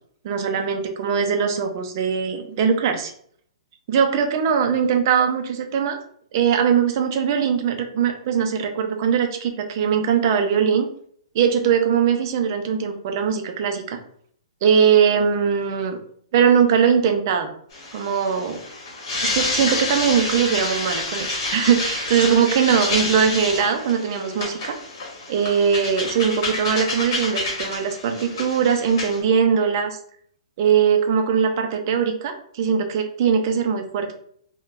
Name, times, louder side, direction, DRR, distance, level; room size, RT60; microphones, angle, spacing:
voice 1, 0.2-3.1 3.9-6.0 6.3-10.9 11.3-14.0 14.6-16.0 16.3-17.5 17.9-18.6 19.2-24.8 25.3-30.0 30.6-34.1, right 7 dB, 35° right, 5 dB, 0.4 m, -21 dB
sound 1, 17.7-29.2, left 2 dB, 40° left, 1.0 m, -28 dB
3.6 x 2.1 x 2.4 m, 0.62 s
hypercardioid pair, 170°, 3 cm